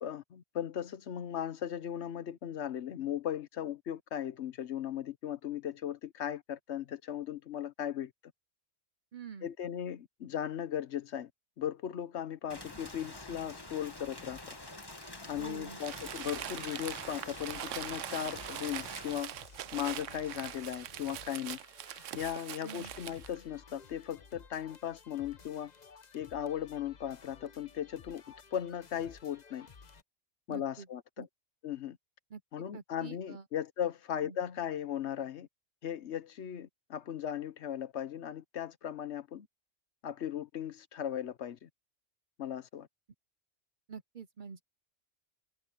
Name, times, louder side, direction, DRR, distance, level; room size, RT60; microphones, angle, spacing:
voice 1, 0.0-8.1 9.4-11.3 11.6-14.6 15.3-19.3 19.7-21.6 22.1-25.7 26.1-28.2 28.5-29.7 30.5-31.3 31.6-32.0 32.5-35.5 35.8-39.5 40.0-41.7 42.4-42.9, left 10 dB, 65° left, 1.1 m, -37 dB
voice 2, 9.1-9.5 15.3-15.8 22.6-22.9 30.5-30.9 31.2-31.3 32.3-32.4 32.7-33.5 34.2-34.4 43.9-44.6, right 6 dB, 45° right, 0.8 m, -46 dB
Rain, 12.5-19.2, left 2 dB, 20° left, 1.8 m, -47 dB
sound 1, 14.0-30.0, left 5 dB, 40° left, 1.0 m, -56 dB
Crumpling crinkling, 15.8-23.4, right 12 dB, 85° right, 1.0 m, -43 dB
omnidirectional pair, 1.3 m